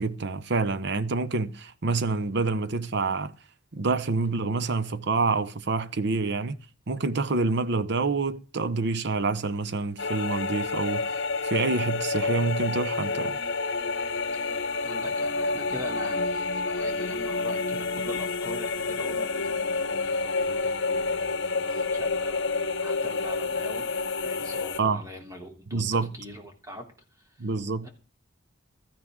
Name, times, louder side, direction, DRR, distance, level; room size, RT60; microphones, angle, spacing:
voice 1, 0.0-3.3 3.7-6.6 6.9-11.1 11.4-13.3 24.8-25.0 25.7-26.1 27.4-27.9, right 3 dB, 60° right, 0.8 m, -27 dB
sound 1, 10.0-24.8, left 3 dB, 60° left, 1.0 m, -29 dB
voice 2, 14.3-22.5 22.8-26.9 27.2-27.3 27.8-27.9, left 1 dB, 15° right, 3.0 m, -43 dB
16.0 x 13.5 x 3.7 m
head